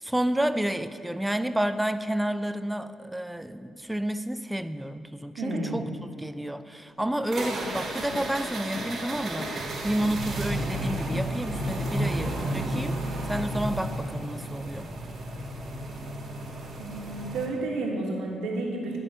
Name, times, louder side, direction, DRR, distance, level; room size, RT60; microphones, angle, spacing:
voice 1, 0.0-5.9 6.2-9.5 9.8-13.0 13.3-14.9, right 1 dB, 5° right, 12 dB, 0.4 m, -30 dB
voice 2, 5.4-5.9 16.8-19.0, right 2 dB, 90° right, 0 dB, 1.4 m, -31 dB
sound 1, 6.9-12.2, left 4 dB, 70° left, 0.8 m, -42 dB
sound 2, 7.3-17.5, right 1 dB, 60° right, 1.5 m, -32 dB
10.0 x 5.3 x 5.5 m, 2.5 s
cardioid pair, 75°, 0 cm